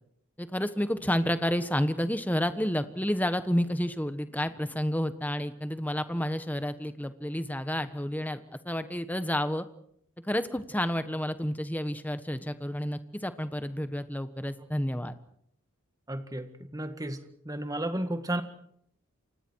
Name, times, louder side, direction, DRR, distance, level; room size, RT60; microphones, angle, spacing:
voice 1, 0.4-9.7 10.2-15.2, equal, 10° left, 11 dB, 1.2 m, -30 dB
voice 2, 16.1-18.4, right 1 dB, 15° right, 8 dB, 1.9 m, -33 dB
29.0 x 25.0 x 4.7 m, 0.68 s
head